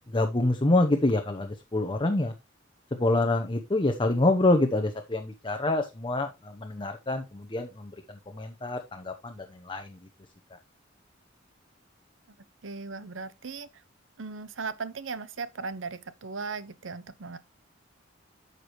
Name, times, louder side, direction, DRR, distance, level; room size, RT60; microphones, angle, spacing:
voice 1, 0.1-2.3 2.9-10.0 10.5-10.6, left 2 dB, 25° left, 0.9 m, -26 dB
voice 2, 12.6-13.8 14.2-17.4, right 4 dB, 85° right, 0.8 m, -37 dB
9.5 x 6.8 x 3.1 m
head